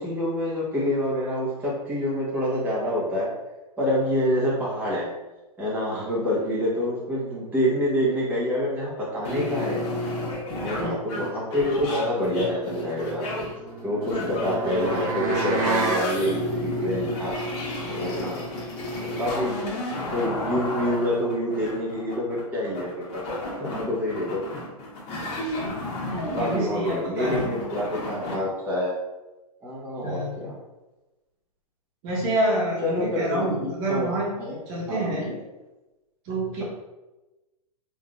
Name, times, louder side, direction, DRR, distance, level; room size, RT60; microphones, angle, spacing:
voice 1, 0.0-3.3 3.8-5.1 5.6-9.8 10.6-13.3 13.8-17.4 18.0-18.5 19.0-19.5 20.0-23.2 23.6-24.4 26.3-28.9 29.6-30.5 32.8-34.6 34.9-35.4, equal, 10° right, -8 dB, 1.0 m, -27 dB
sound 1, 9.2-28.3, left 1 dB, 45° left, 1.1 m, -31 dB
sound 2, 13.5-16.1, right 4 dB, 60° right, 0.6 m, -29 dB
voice 2, 26.3-27.6 30.0-30.5 32.0-34.3 34.7-35.3 36.2-36.6, right 1 dB, 45° right, -4 dB, 1.2 m, -27 dB
3.4 x 2.7 x 2.4 m, 1.1 s
hypercardioid pair, 115°, 19 cm